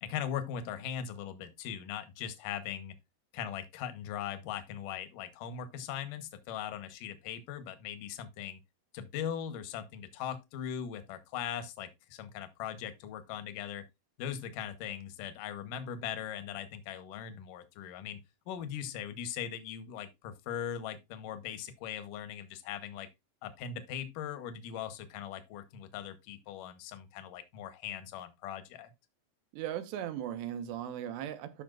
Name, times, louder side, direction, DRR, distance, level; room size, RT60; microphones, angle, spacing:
voice 1, 0.0-2.9 3.3-8.6 8.9-13.8 14.2-18.2 18.5-23.1 23.4-28.9, left 9 dB, 70° left, 2.2 m, -40 dB
voice 2, 29.5-31.6, right 10 dB, 80° right, 3.3 m, -37 dB
13.0 x 6.0 x 2.4 m
omnidirectional pair, 5.0 m